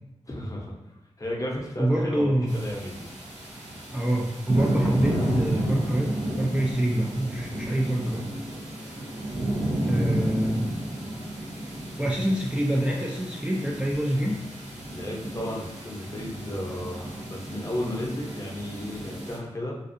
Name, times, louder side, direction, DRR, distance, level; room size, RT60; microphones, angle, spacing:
voice 1, 0.3-0.7 1.2-3.1 9.6-10.3 14.9-19.8, left 1 dB, 30° left, -2 dB, 0.7 m, -34 dB
voice 2, 1.8-2.5 3.9-8.3 9.8-10.7 12.0-14.4, right 1 dB, 10° right, -2 dB, 0.3 m, -26 dB
sound 1, 2.5-19.4, right 1 dB, 85° right, 0.7 m, -32 dB
2.5 x 2.3 x 2.6 m, 0.95 s
cardioid pair, 55°, 12 cm